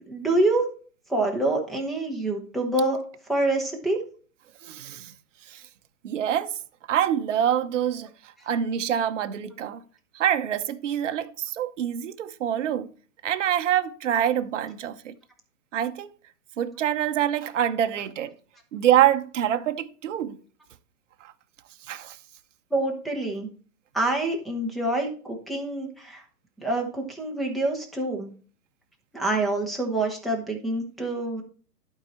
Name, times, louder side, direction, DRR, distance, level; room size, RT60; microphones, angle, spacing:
voice 1, 0.1-0.7 1.1-3.0 3.3-4.0 22.7-23.5 23.9-26.2 26.6-28.3 29.1-31.4, right 2 dB, ahead, 1.0 m, -26 dB
voice 2, 4.6-5.1 5.5-5.6 6.0-6.5 6.9-9.8 10.1-12.9 13.2-15.2 15.7-16.1 16.6-18.3 18.7-20.4 21.2-21.3 21.9-22.2, right 10 dB, 50° right, 0.8 m, -25 dB
11.5 x 4.7 x 4.3 m
hypercardioid pair, 145°, 47 cm